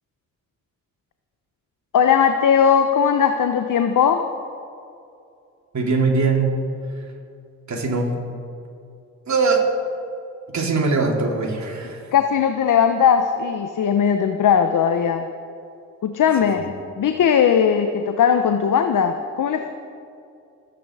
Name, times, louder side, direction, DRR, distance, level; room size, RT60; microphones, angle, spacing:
voice 1, 1.9-4.2 12.1-15.3 16.0-16.6 17.0-19.7, left 7 dB, 60° left, 7 dB, 1.0 m, -18 dB
voice 2, 5.7-6.5 7.7-8.1 9.3-9.6 10.5-12.0 16.6-16.7, right 4 dB, 50° right, -1 dB, 3.9 m, -21 dB
26.5 x 9.9 x 4.9 m, 2.5 s
supercardioid pair, 50°, 35 cm